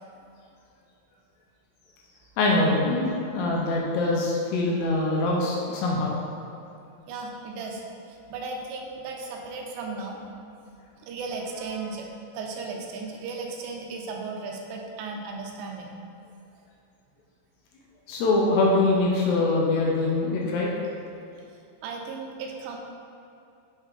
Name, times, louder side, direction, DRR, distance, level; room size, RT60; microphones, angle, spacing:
voice 1, 2.4-6.1 18.1-20.7, left 2 dB, 80° left, -2 dB, 2.8 m, -23 dB
voice 2, 7.1-10.2 11.0-15.9 21.8-22.8, right 4 dB, 85° right, 1 dB, 2.9 m, -36 dB
8.1 x 4.3 x 3.6 m, 2.7 s
omnidirectional pair, 5.1 m